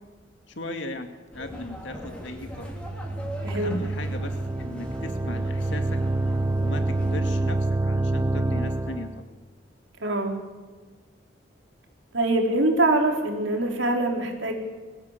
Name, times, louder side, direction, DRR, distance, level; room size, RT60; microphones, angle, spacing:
voice 1, 0.5-2.7 3.5-6.0 6.6-7.6 7.8-9.2, left 1 dB, 70° left, 5 dB, 2.3 m, -37 dB
sound 1, 1.3-7.2, equal, 5° left, 3.4 m, -41 dB
sound 2, 2.4-9.2, right 2 dB, 15° right, 0.6 m, -27 dB
voice 2, 3.4-3.8 10.0-10.3 12.1-14.5, right 2 dB, 75° right, 1 dB, 4.2 m, -23 dB
22.5 x 16.0 x 8.3 m, 1.5 s
head